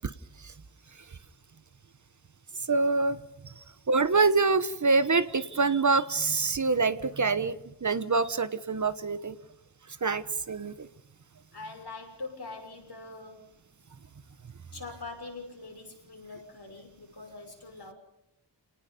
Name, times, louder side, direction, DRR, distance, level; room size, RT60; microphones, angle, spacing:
voice 1, 2.7-3.2 3.4-3.5 3.9-7.5 7.8-9.3 10.0-10.9, right 4 dB, 45° right, 13 dB, 1.1 m, -25 dB
voice 2, 11.5-13.6 14.7-17.9, left 3 dB, 65° left, 3 dB, 6.2 m, -43 dB
29.0 x 19.0 x 5.3 m, 0.87 s
wide cardioid pair, 95°, 42 cm